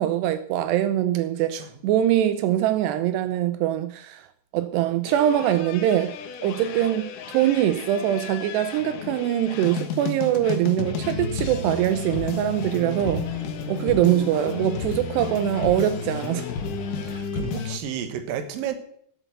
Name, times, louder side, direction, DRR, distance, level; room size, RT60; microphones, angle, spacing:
voice 1, 0.0-4.3 4.5-6.1 6.4-13.2 13.7-16.5, right 12 dB, 85° right, 2.3 m, -23 dB
sound 1, 5.0-17.8, left 6 dB, 75° left, 1.9 m, -32 dB
sound 2, 11.6-17.2, left 6 dB, 60° left, 2.9 m, -42 dB
voice 2, 17.1-18.7, right 9 dB, 65° right, 2.4 m, -31 dB
10.5 x 8.1 x 7.9 m
omnidirectional pair, 5.7 m